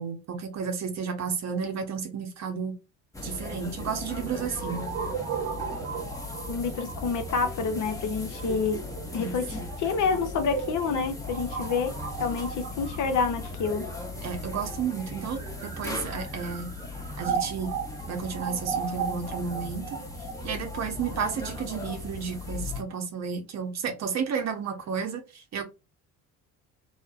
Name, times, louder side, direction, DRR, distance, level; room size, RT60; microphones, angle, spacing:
voice 1, 0.0-2.7 3.2-4.9 9.2-9.6 14.2-16.7 17.2-17.8 18.1-20.0 20.4-25.6, right 6 dB, 40° right, 0.8 m, -32 dB
sound 1, 3.1-22.8, left 2 dB, 10° left, 0.8 m, -38 dB
sound 2, 4.6-14.4 15.1-22.1, right 7 dB, 75° right, 0.9 m, -36 dB
voice 2, 6.5-8.8 9.1-13.9, left 5 dB, 50° left, 0.6 m, -28 dB
2.6 x 2.0 x 2.4 m
hypercardioid pair, 65°, 41 cm